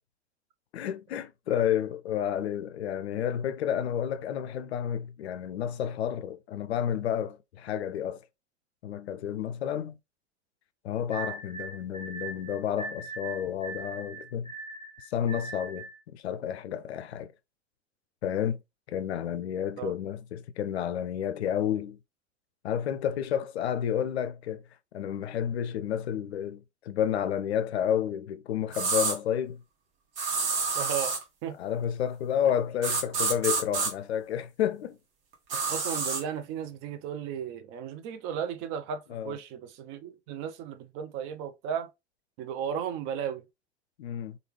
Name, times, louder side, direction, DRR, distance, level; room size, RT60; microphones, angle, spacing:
voice 1, 0.7-8.2 8.8-10.0 10.8-14.5 15.1-17.3 18.2-18.6 18.9-22.0 22.6-24.6 24.9-29.6 31.6-35.0 39.1-39.4 44.0-44.4, left 9 dB, 65° left, 0.5 m, -30 dB
sound 1, 11.1-16.0, right 4 dB, 15° right, 1.3 m, -40 dB
sound 2, 28.7-29.2 30.2-31.2 32.8-33.9 35.5-36.2, right 4 dB, 55° right, 1.1 m, -28 dB
voice 2, 30.7-31.2 31.4-31.6 35.5-41.9 42.4-43.4, right 8 dB, 35° right, 0.5 m, -35 dB
3.2 x 2.3 x 3.0 m
figure-of-eight pair, 85°, 35 cm